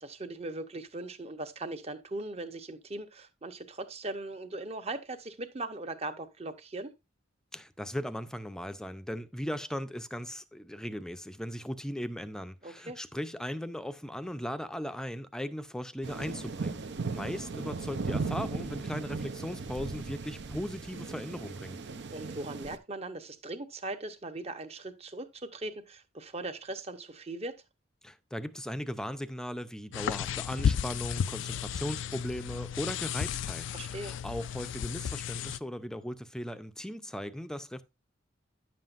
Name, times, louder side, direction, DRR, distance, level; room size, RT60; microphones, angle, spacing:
voice 1, 0.0-6.9 12.6-13.0 22.1-27.6 33.7-34.1, right 2 dB, 35° right, 0.9 m, -39 dB
voice 2, 7.5-16.8 17.1-21.8 28.0-37.8, equal, 5° left, 0.5 m, -38 dB
sound 1, 16.0-22.8, right 4 dB, 65° right, 0.6 m, -37 dB
sound 2, 29.9-35.6, left 8 dB, 70° left, 0.3 m, -33 dB
9.9 x 7.5 x 2.5 m
head